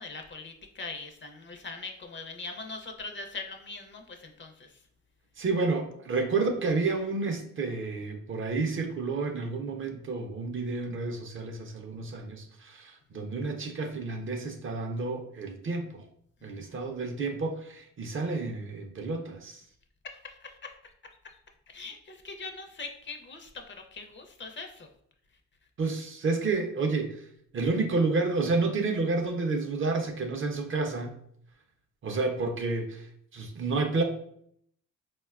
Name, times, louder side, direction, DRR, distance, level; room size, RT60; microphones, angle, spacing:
voice 1, 0.0-4.7 16.4-16.8 20.0-20.7 21.2-21.4 21.7-24.9, left 3 dB, 35° left, 5 dB, 0.5 m, -42 dB
voice 2, 5.4-16.1 16.4-19.6 25.8-27.2 27.5-31.2 32.0-33.0 33.3-34.0, right 3 dB, 40° right, 5 dB, 0.5 m, -30 dB
3.7 x 2.2 x 2.3 m, 0.68 s
cardioid pair, 80°, 33 cm